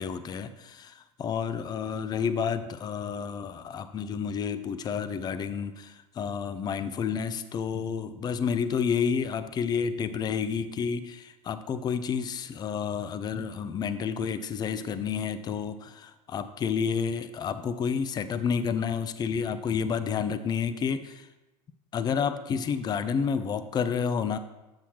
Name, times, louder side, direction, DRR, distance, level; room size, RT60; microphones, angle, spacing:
voice 1, 0.0-21.3 21.9-24.4, left 6 dB, 20° left, 12 dB, 0.4 m, -30 dB
7.6 x 6.9 x 2.9 m, 1.0 s
figure-of-eight pair, 85°, 20 cm